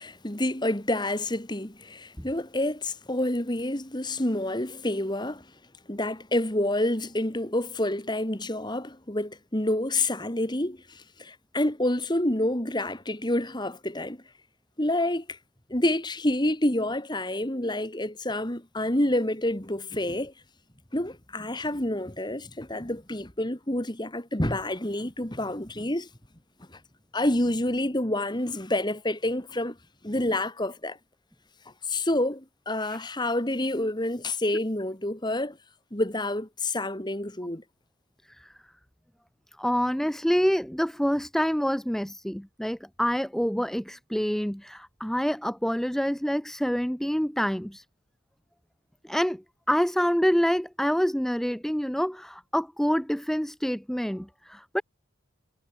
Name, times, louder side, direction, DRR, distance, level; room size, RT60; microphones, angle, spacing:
voice 1, 0.0-5.4 5.9-14.2 14.8-15.4 15.7-20.3 20.9-26.1 27.1-29.8 30.0-31.0 31.9-35.6 35.9-37.6, left 1 dB, 20° left, 2.1 m, -28 dB
voice 2, 39.6-47.8 49.0-49.4 49.7-54.8, equal, ahead, 0.5 m, -27 dB
head